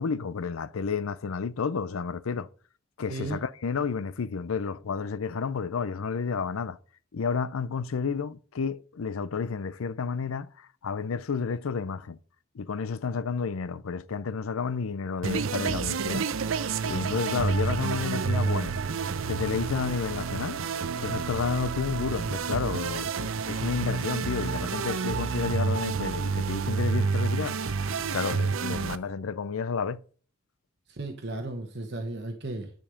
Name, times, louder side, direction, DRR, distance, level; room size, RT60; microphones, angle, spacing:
voice 1, 0.0-2.5 3.0-6.8 7.1-12.2 12.5-16.3 16.8-18.8 19.3-20.6 21.0-30.0, left 5 dB, 85° left, 0.5 m, -31 dB
voice 2, 3.1-3.4 28.7-28.8 30.9-32.7, right 2 dB, 55° right, 1.1 m, -35 dB
sound 1, 15.2-29.0, right 5 dB, 75° right, 0.5 m, -29 dB
9.8 x 5.3 x 5.0 m
head